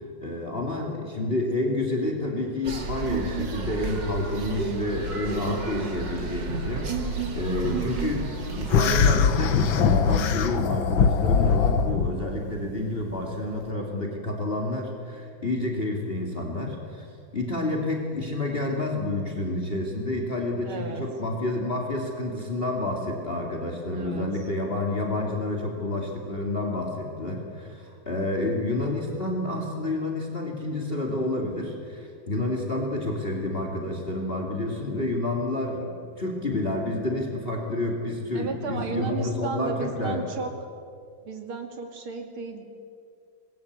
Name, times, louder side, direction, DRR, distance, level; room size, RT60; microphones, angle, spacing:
voice 1, 0.2-17.1 17.3-40.2, left 2 dB, 25° left, 2 dB, 3.0 m, -29 dB
sound 1, 2.6-9.0, right 3 dB, 60° right, 2.9 m, -31 dB
sound 2, 8.7-12.1, left 6 dB, 70° left, 1.9 m, -21 dB
voice 2, 20.6-21.0 23.9-24.3 38.3-40.5 41.2-42.6, right 5 dB, 85° right, 5 dB, 3.3 m, -33 dB
25.5 x 21.0 x 8.3 m, 2.3 s
omnidirectional pair, 2.2 m